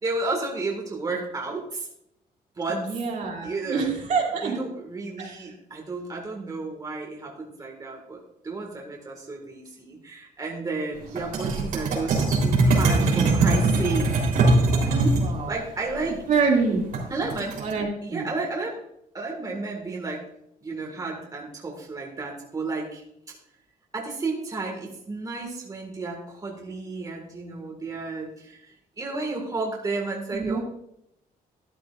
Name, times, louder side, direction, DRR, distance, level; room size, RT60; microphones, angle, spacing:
voice 1, 0.0-1.9 2.6-3.0 3.4-3.9 4.4-14.1 14.3-14.6 14.8-15.2 15.5-16.2 17.1-17.6 18.0-18.8 19.1-20.2 20.6-23.4 23.9-30.6, right 3 dB, 25° right, 0 dB, 1.8 m, -32 dB
voice 2, 2.7-4.6 5.2-5.3 15.1-15.5 16.3-16.8 17.6-18.3 30.3-30.6, right 5 dB, 55° right, -1 dB, 2.5 m, -26 dB
sound 1, 11.1-15.3 16.9-17.7, right 2 dB, 80° right, 3.5 m, -21 dB
12.5 x 11.0 x 2.5 m, 0.77 s
cardioid pair, 125°, 15 cm